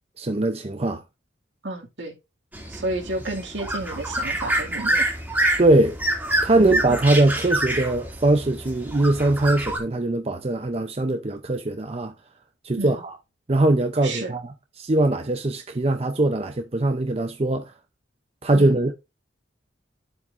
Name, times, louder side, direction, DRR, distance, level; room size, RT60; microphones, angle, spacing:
voice 1, 0.2-1.0 5.6-6.0 6.4-12.1 12.6-13.2 13.5-17.6 18.4-19.0, right 2 dB, 30° right, 0.6 m, -21 dB
voice 2, 1.6-2.1 2.7-5.1 6.6-7.1 12.8-13.0 14.0-14.3 18.5-18.8, right 2 dB, 70° right, 2.3 m, -31 dB
sound 1, 2.5-9.8, right 1 dB, 10° right, 2.5 m, -27 dB
10.5 x 7.5 x 2.5 m
head